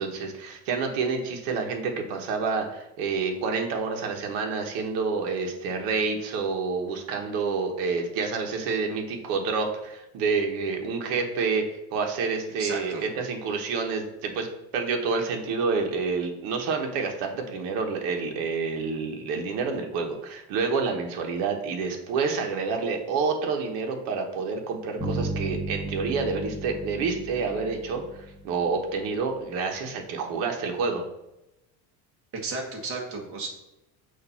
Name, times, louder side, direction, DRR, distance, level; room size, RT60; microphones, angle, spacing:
voice 1, 0.0-11.6 11.9-14.5 14.7-31.0, right 4 dB, 65° right, 2 dB, 1.2 m, -28 dB
voice 2, 12.6-13.0 32.4-33.5, right 3 dB, 35° right, 0 dB, 1.3 m, -33 dB
sound 1, 25.0-29.0, right 1 dB, 10° left, 1.4 m, -34 dB
6.6 x 2.7 x 5.5 m, 0.90 s
cardioid pair, 165°, 39 cm